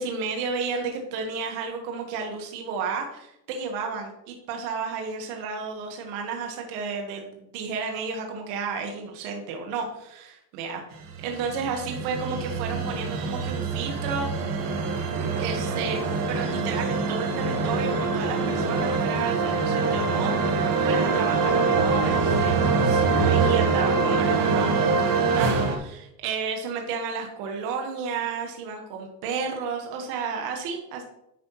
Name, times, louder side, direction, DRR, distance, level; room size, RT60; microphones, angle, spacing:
voice 1, 0.0-10.8 11.2-14.3 15.4-16.0 16.3-31.0, right 5 dB, 65° right, 3 dB, 1.6 m, -32 dB
sound 1, 11.0-25.8, right 4 dB, 45° right, 1.5 m, -24 dB
10.0 x 5.2 x 3.1 m, 0.81 s
supercardioid pair, 120°, 47 cm